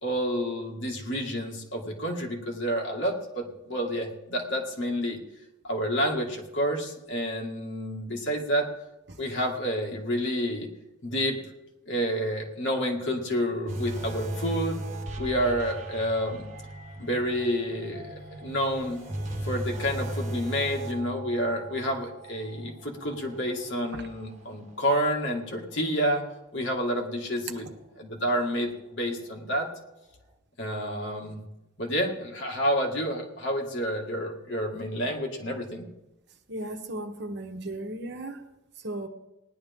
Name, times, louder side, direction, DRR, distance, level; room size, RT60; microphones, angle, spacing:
voice 1, 0.0-5.2 5.6-8.7 9.2-10.7 11.0-11.4 11.9-14.8 15.2-16.4 17.0-19.0 19.4-26.2 26.5-27.7 28.0-29.7 30.6-31.4 31.8-35.9, equal, 70° left, 2.1 m, -29 dB
sound 1, 13.7-25.1 25.5-25.7 26.3-26.4, right 1 dB, 40° right, 1.6 m, -37 dB
voice 2, 36.5-38.4 38.8-39.1, right 1 dB, 60° right, 1.1 m, -35 dB
18.5 x 10.5 x 3.7 m
head